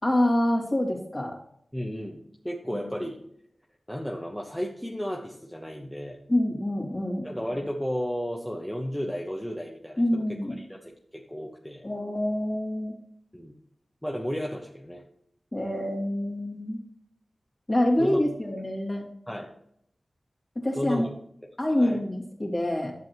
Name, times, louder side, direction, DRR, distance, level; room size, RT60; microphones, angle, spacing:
voice 1, 0.0-1.4 2.7-2.9 6.3-7.3 10.0-10.6 11.8-13.0 15.5-16.8 17.7-19.1 20.5-21.1 21.6-22.9, left 1 dB, 25° left, -2 dB, 2.7 m, -26 dB
voice 2, 1.7-3.2 3.9-6.2 7.2-11.8 13.3-13.5 14.0-15.0 18.0-18.2 19.3-19.5 20.7-21.1 21.7-22.0, equal, 5° left, -1 dB, 1.1 m, -33 dB
12.0 x 7.7 x 3.1 m, 0.70 s
wide cardioid pair, 80°, 0 cm